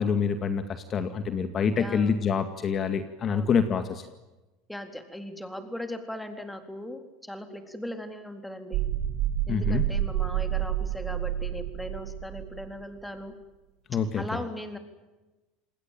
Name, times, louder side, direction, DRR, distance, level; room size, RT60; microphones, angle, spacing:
voice 1, 0.0-4.0 9.5-9.8 13.9-14.4, left 6 dB, 35° left, 9 dB, 2.0 m, -26 dB
voice 2, 1.8-2.2 3.3-3.5 4.7-8.8 9.5-13.4 14.2-14.8, left 1 dB, 5° left, 7 dB, 3.8 m, -38 dB
sound 1, 8.7-12.7, right 11 dB, 65° right, 7.6 m, -29 dB
28.0 x 20.5 x 9.2 m, 1.1 s
supercardioid pair, 110°, 0 cm